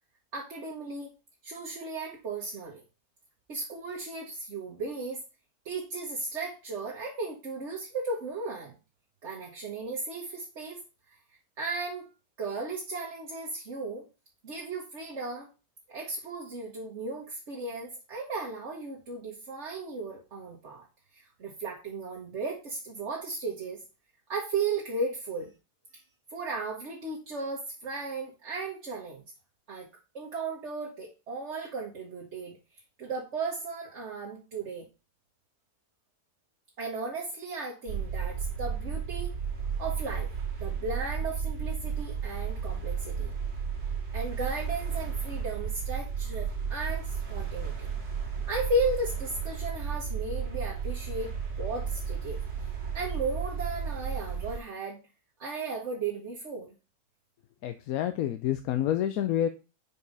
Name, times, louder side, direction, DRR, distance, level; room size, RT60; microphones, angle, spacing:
voice 1, 0.3-1.1 1.4-2.8 3.5-5.2 5.6-8.7 9.2-10.8 11.6-12.1 12.4-14.0 14.4-15.5 15.9-20.9 21.1-23.8 24.3-25.5 26.3-29.2 29.7-29.9 30.1-32.6 33.0-34.9 36.8-39.4 39.8-40.3 40.6-43.3 44.1-47.9 48.5-52.4 52.9-55.0 55.4-56.7, right 3 dB, 50° right, -2 dB, 1.5 m, -35 dB
sound 1, 37.9-54.6, right 6 dB, 85° right, 2.2 m, -33 dB
voice 2, 57.6-59.5, left 11 dB, 70° left, 8 dB, 1.0 m, -28 dB
5.5 x 4.6 x 5.3 m, 0.31 s
omnidirectional pair, 1.6 m